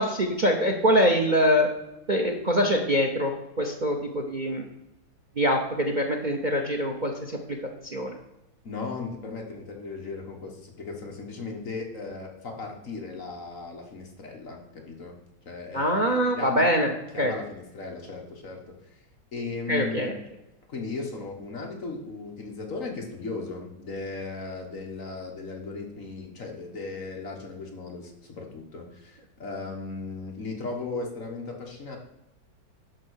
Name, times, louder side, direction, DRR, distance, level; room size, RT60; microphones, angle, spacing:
voice 1, 0.0-1.7 2.1-3.3 3.6-4.7 5.4-7.6 7.8-8.2 15.7-16.9 17.2-17.3 19.7-20.1, equal, 50° right, 4 dB, 0.5 m, -24 dB
voice 2, 8.6-15.1 15.4-16.6 17.1-18.8 19.3-20.1 20.7-32.0, left 3 dB, 45° left, 1 dB, 1.6 m, -36 dB
11.0 x 3.8 x 6.3 m, 0.92 s
omnidirectional pair, 2.1 m